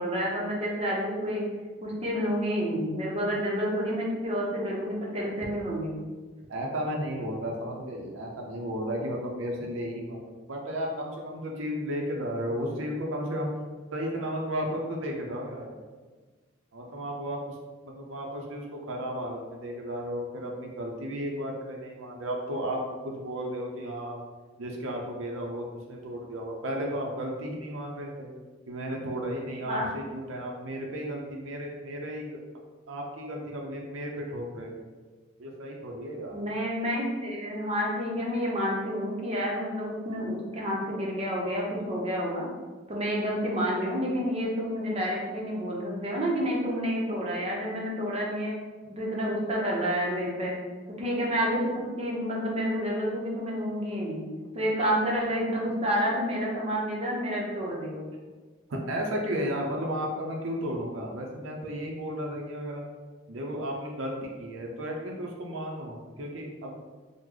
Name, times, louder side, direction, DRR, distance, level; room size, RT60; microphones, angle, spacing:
voice 1, 0.0-1.4 1.8-5.9 29.7-29.9 36.3-42.4 42.9-48.5 48.9-50.6 51.0-54.2 54.5-58.0, equal, 30° right, -3 dB, 0.7 m, -29 dB
voice 2, 6.5-13.5 13.9-15.8 16.7-17.6 17.8-24.2 24.6-28.3 28.7-32.3 32.9-34.9 35.4-36.4 58.7-62.8 63.3-66.8, equal, 80° right, 0 dB, 0.5 m, -34 dB
3.1 x 2.0 x 3.7 m, 1.4 s
head